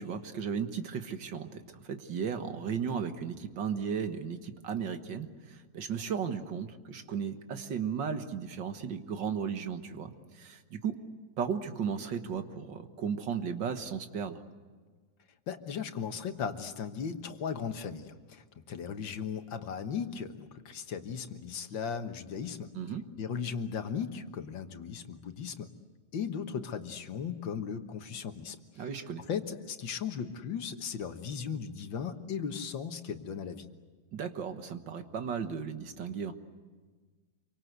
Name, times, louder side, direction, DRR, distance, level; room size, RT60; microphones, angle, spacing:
voice 1, 0.0-11.0 11.4-14.4 22.7-23.0 28.8-29.2 34.1-36.3, right 7 dB, 75° right, 8 dB, 2.1 m, -35 dB
voice 2, 15.5-22.7 23.2-25.7 26.1-28.6 29.3-33.7, left 7 dB, 80° left, 7 dB, 2.1 m, -37 dB
27.5 x 24.5 x 8.1 m, 1.4 s
omnidirectional pair, 2.0 m